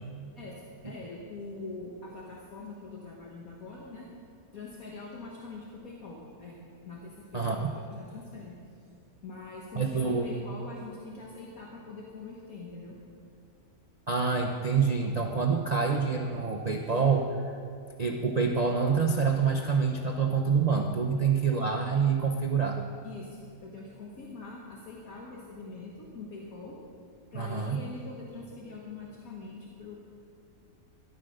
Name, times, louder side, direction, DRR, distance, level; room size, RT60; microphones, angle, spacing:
voice 1, 0.3-4.1 4.5-6.6 6.9-8.6 9.2-13.0 21.2-21.3 23.0-26.8 27.3-30.0, left 3 dB, 65° left, -2 dB, 1.9 m, -43 dB
voice 2, 7.3-7.7 9.8-10.3 14.1-17.5 18.0-22.8 27.3-27.8, right 5 dB, 35° right, 1 dB, 0.7 m, -27 dB
14.0 x 11.5 x 6.5 m, 2.3 s
omnidirectional pair, 1.6 m